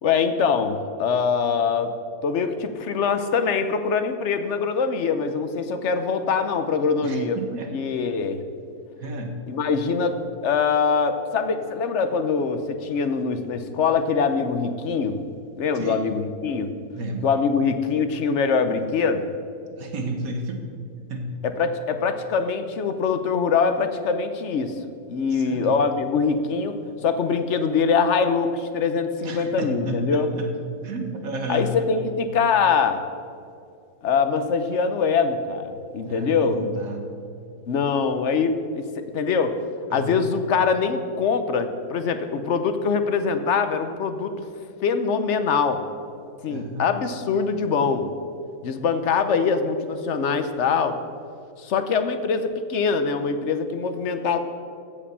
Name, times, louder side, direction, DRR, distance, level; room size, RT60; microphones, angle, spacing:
voice 1, 0.0-1.9 2.2-7.4 7.7-8.4 9.5-15.2 15.6-16.7 17.2-19.3 21.4-24.7 25.1-26.8 27.0-30.3 31.5-33.0 34.0-36.6 37.7-39.5 39.9-44.3 44.8-45.8 46.4-48.1 48.6-51.0 51.6-54.4, left 5 dB, 55° left, 9 dB, 0.9 m, -23 dB
voice 2, 7.0-7.7 9.0-9.4 15.7-16.1 16.9-17.3 19.8-20.6 21.1-21.3 25.3-25.8 29.2-30.5 30.8-31.7 36.0-37.1 39.9-40.2 46.5-46.8, right 2 dB, 60° right, 4 dB, 1.6 m, -32 dB
15.5 x 5.3 x 6.8 m, 2.5 s
omnidirectional pair, 1.7 m